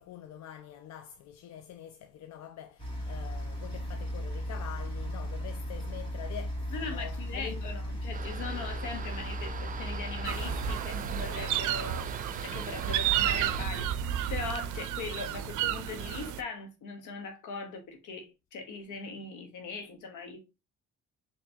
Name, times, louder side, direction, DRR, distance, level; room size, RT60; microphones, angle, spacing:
voice 1, 0.0-7.6 12.5-13.0, left 10 dB, 65° left, 0.5 m, -45 dB
sound 1, 2.8-10.7, equal, 15° left, 2.0 m, -36 dB
voice 2, 6.7-12.1 12.4-20.4, left 4 dB, 80° left, 1.1 m, -40 dB
sound 2, 8.1-13.7, right 6 dB, 30° right, 0.4 m, -41 dB
sound 3, 10.2-16.4, right 10 dB, 85° right, 0.5 m, -32 dB
4.4 x 3.1 x 2.7 m
cardioid pair, 90°, 30 cm